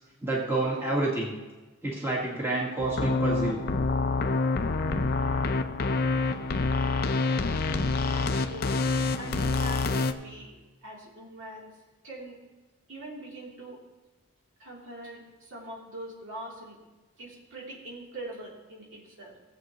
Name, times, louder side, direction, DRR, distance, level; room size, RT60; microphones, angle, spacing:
voice 1, 0.2-1.4 1.8-3.6, right 2 dB, 10° right, -4 dB, 1.6 m, -28 dB
sound 1, 2.8-10.1, left 3 dB, 45° left, 0.5 m, -27 dB
voice 2, 8.1-8.9 9.2-10.5 10.8-11.7 12.0-12.4 12.9-13.8 14.6-16.8 17.2-19.3, right 1 dB, 65° right, -4 dB, 3.2 m, -42 dB
17.0 x 7.9 x 3.0 m, 1.2 s
head